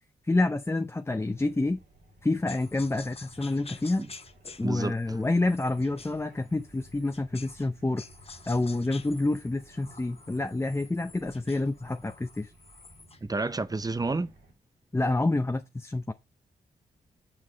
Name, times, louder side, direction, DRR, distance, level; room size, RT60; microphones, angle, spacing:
voice 1, 0.2-1.8 2.2-4.0 4.6-8.0 8.5-12.5 14.9-16.1, left 2 dB, 15° left, 0.6 m, -28 dB
sound 1, 1.1-14.5, right 1 dB, 85° right, 2.1 m, -56 dB
sound 2, 2.5-7.7 8.0-13.3, left 4 dB, 35° left, 0.9 m, -49 dB
voice 2, 4.6-5.2 13.2-14.3, right 3 dB, 20° right, 0.7 m, -30 dB
5.8 x 4.7 x 3.9 m
supercardioid pair, 45°, 17 cm